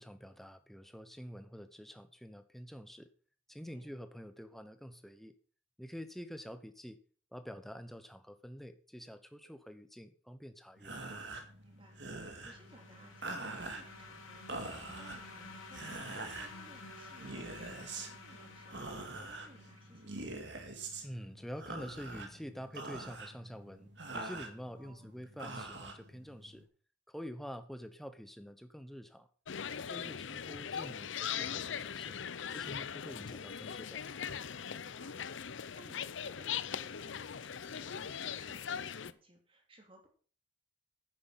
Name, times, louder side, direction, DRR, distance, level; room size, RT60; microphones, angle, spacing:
voice 1, 0.0-3.1 3.5-5.4 5.8-7.0 7.3-11.0 21.0-26.6 27.1-29.3 29.8-32.2 32.5-34.0, equal, ahead, 10 dB, 0.9 m, -47 dB
voice 2, 3.6-3.9 11.6-20.4 24.7-25.2 30.0-30.2 34.8-40.1, right 1 dB, 25° right, 2 dB, 3.2 m, -61 dB
sound 1, 10.8-26.6, right 2 dB, 60° right, 2.3 m, -45 dB
sound 2, 11.9-20.5, left 3 dB, 85° left, 2.9 m, -52 dB
sound 3, 29.5-39.1, left 8 dB, 70° left, 0.6 m, -40 dB
9.9 x 9.8 x 5.8 m, 0.42 s
head